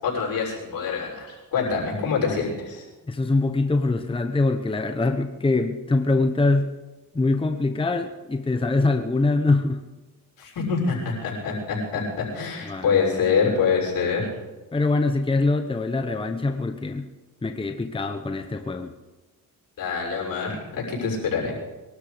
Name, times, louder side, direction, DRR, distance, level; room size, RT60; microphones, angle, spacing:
voice 1, 0.0-2.8 10.4-14.3 19.8-21.5, left 5 dB, 70° left, -2 dB, 6.4 m, -25 dB
voice 2, 3.1-6.7 7.1-9.8 12.7-12.9 14.7-17.1 17.4-18.9, left 3 dB, 15° left, 6 dB, 1.0 m, -23 dB
22.5 x 12.5 x 5.1 m, 1.2 s
cardioid pair, 95°, 35 cm